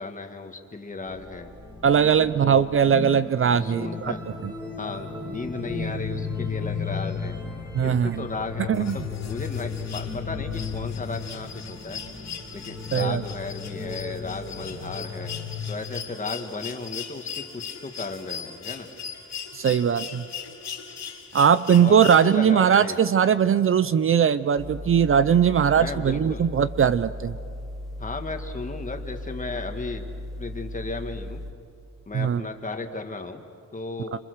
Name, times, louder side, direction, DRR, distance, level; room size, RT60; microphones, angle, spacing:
voice 1, 0.0-1.5 2.2-2.7 3.4-4.2 4.8-7.4 7.8-12.0 12.5-15.3 15.7-18.9 21.7-22.0 22.2-23.0 25.8-26.5 28.0-30.1 30.4-31.4 32.1-33.4 33.7-34.2, left 3 dB, 25° left, 5 dB, 1.9 m, -35 dB
sound 1, 1.1-15.7, left 5 dB, 15° right, 3.7 m, -34 dB
voice 2, 1.8-4.1 4.4-4.5 7.7-8.2 8.7-9.0 12.9-13.2 19.5-20.2 21.3-27.4 32.1-32.5, right 7 dB, 45° right, 15 dB, 0.6 m, -20 dB
sound 2, 8.7-22.7 24.1-24.2, left 7 dB, 65° left, 3.0 m, -39 dB
sound 3, 24.6-31.5, left 1 dB, ahead, 1.6 m, -37 dB
27.5 x 26.0 x 6.6 m, 2.4 s
wide cardioid pair, 120°, 29 cm